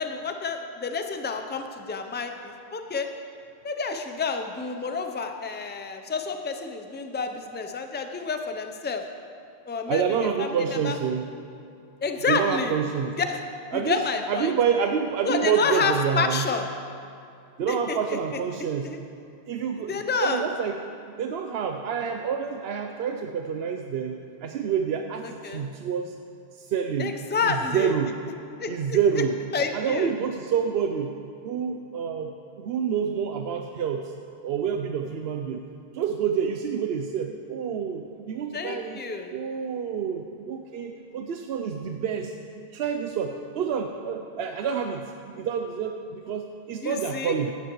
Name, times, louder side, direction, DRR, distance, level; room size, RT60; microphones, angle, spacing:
voice 1, 0.0-3.1 3.6-9.0 9.7-11.0 12.0-12.8 13.2-13.4 13.7-14.5 15.3-16.7 17.7-18.4 18.8-19.0 19.9-20.4 25.4-25.6 27.0-27.9 28.6-29.0 29.5-30.1 38.5-39.3 46.8-47.4, left 5 dB, 15° left, 6 dB, 0.4 m, -29 dB
voice 2, 9.9-11.3 12.3-13.1 13.7-14.0 14.3-16.5 17.6-18.9 19.5-20.7 21.2-26.1 26.5-27.1 27.4-28.2 28.7-29.4 29.7-31.1 31.4-34.0 34.4-35.6 35.9-39.0 39.3-42.3 42.7-45.1 45.4-47.5, right 7 dB, 75° right, 4 dB, 0.8 m, -28 dB
15.0 x 11.5 x 3.1 m, 2.5 s
omnidirectional pair, 1.1 m